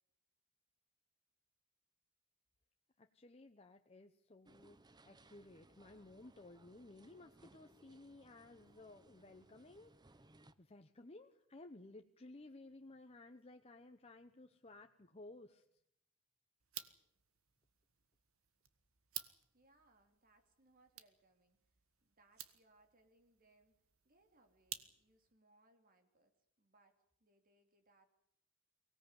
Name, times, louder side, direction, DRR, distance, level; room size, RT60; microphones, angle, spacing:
voice 1, 3.0-10.3 10.6-15.6, left 2 dB, 30° left, 5 dB, 0.9 m, -57 dB
sound 1, 4.5-10.5, right 2 dB, 20° right, 0.9 m, -66 dB
sound 2, 16.6-25.3, right 12 dB, 80° right, 1.6 m, -54 dB
voice 2, 19.5-21.6 22.0-23.7 24.0-28.0, right 2 dB, 45° right, 6 dB, 2.9 m, -72 dB
24.0 x 17.5 x 9.7 m, 0.77 s
head